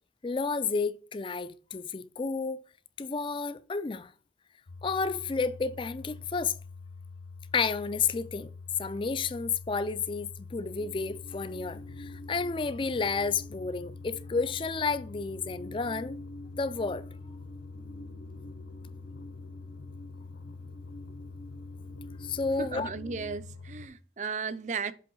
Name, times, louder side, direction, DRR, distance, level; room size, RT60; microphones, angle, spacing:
voice 1, 0.2-2.6 3.0-4.1 4.8-6.6 7.5-8.5 8.8-16.2 16.6-17.0 22.2-22.9, left 4 dB, 30° left, 0.4 m, -31 dB
sound 1, 4.7-23.9, left 4 dB, 75° left, 0.8 m, -45 dB
sound 2, 10.7-23.4, equal, 55° left, 1.5 m, -49 dB
voice 2, 22.6-24.9, right 5 dB, 40° right, 0.5 m, -35 dB
7.6 x 3.4 x 3.8 m
head